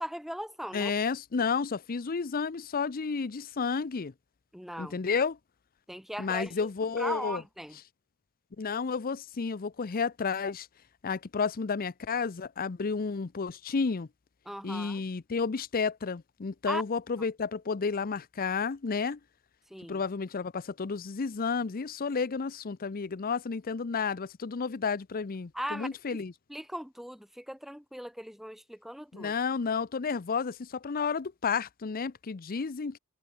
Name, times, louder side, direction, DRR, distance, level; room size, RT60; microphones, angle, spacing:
voice 1, 0.0-0.9 4.5-5.0 5.9-6.5 7.0-7.8 14.5-15.0 16.7-16.8 19.7-20.0 25.5-26.2 26.5-29.3, equal, ahead, 2.0 m, -38 dB
voice 2, 0.7-4.1 4.8-5.4 6.2-7.4 8.6-10.7 11.0-14.1 14.6-19.2 19.9-26.3 29.1-33.0, left 5 dB, 40° left, 0.6 m, -31 dB
head